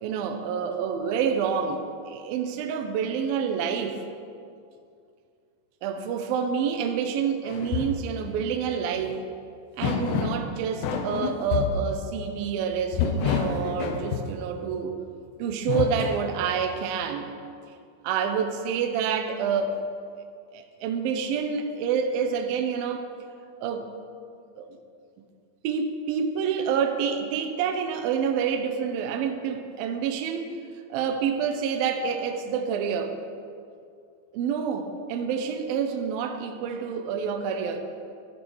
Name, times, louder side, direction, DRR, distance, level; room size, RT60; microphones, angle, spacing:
voice 1, 0.0-4.0 5.8-9.2 9.8-14.9 15.4-17.3 18.0-19.8 20.2-20.3 20.5-23.1 23.6-23.9 24.6-24.8 25.6-30.6 30.9-33.2 34.3-37.8, right 6 dB, 80° right, 5 dB, 2.1 m, -28 dB
sound 1, 7.5-8.0 9.0-9.1 9.8-10.5 10.8-11.9 12.9-14.4 15.5-16.3, left 7 dB, 80° left, 3.0 m, -28 dB
12.5 x 8.5 x 6.3 m, 2.3 s
omnidirectional pair, 5.2 m